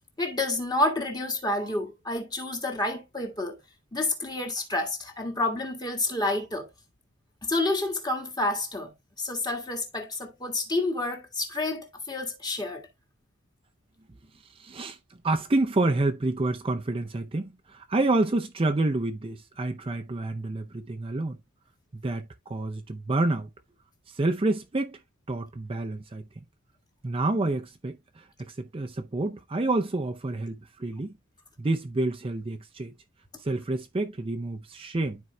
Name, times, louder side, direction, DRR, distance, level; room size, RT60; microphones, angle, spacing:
voice 1, 0.2-3.6 3.9-6.7 7.4-8.9 9.2-12.8, left 2 dB, 20° left, 1.7 m, -29 dB
voice 2, 14.5-15.0 15.2-21.4 21.9-23.5 24.1-25.0 25.3-26.4 27.0-31.1 31.6-32.9 33.4-35.2, right 2 dB, 25° right, 0.6 m, -28 dB
12.5 x 4.6 x 2.2 m
head